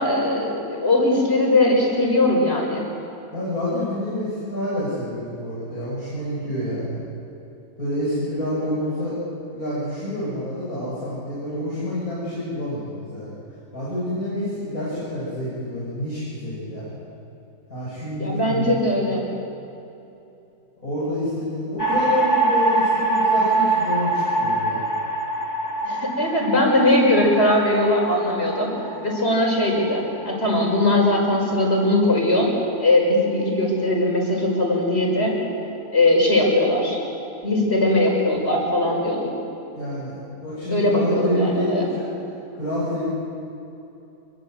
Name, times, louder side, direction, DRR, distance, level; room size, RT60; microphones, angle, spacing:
voice 1, 0.0-2.8 18.2-19.2 25.8-28.7 29.0-32.5 32.8-35.3 35.9-37.0 37.4-39.3 40.7-41.8, left 1 dB, 45° left, -1 dB, 6.1 m, -20 dB
voice 2, 3.3-7.0 7.8-9.2 9.5-13.3 13.7-16.9 17.7-18.8 20.8-24.8 39.8-42.1 42.5-43.1, left 1 dB, 80° left, -9 dB, 8.1 m, -28 dB
sound 1, 21.8-32.1, right 2 dB, 10° left, 2.5 m, -24 dB
27.0 x 22.5 x 8.1 m, 2.8 s
omnidirectional pair, 1.5 m